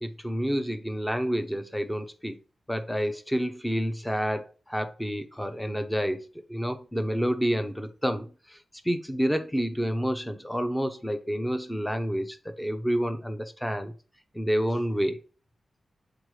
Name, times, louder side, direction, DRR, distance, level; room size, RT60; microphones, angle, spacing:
voice 1, 0.0-2.4 2.7-8.6 8.8-13.9 14.3-15.2, equal, 5° left, 0.8 m, -29 dB
7.8 x 4.4 x 4.9 m
wide cardioid pair, 170°, 0 cm